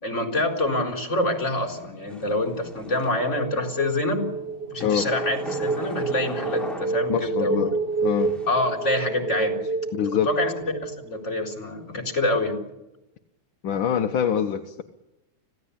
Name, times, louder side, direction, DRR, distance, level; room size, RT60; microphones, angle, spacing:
voice 1, 0.0-4.2 4.7-7.7 8.5-9.6 10.2-10.5 10.8-12.6, left 1 dB, 35° left, 3 dB, 4.5 m, -26 dB
sound 1, 1.5-3.5 4.8-7.4 8.0-9.1, equal, ahead, 3.7 m, -39 dB
sound 2, 2.6-11.5, right 3 dB, 30° right, 2.8 m, -29 dB
voice 2, 7.1-7.7 8.0-8.3 9.9-10.3 13.6-14.8, left 8 dB, 70° left, 6 dB, 1.8 m, -24 dB
26.0 x 16.5 x 8.6 m, 0.95 s
omnidirectional pair, 2.2 m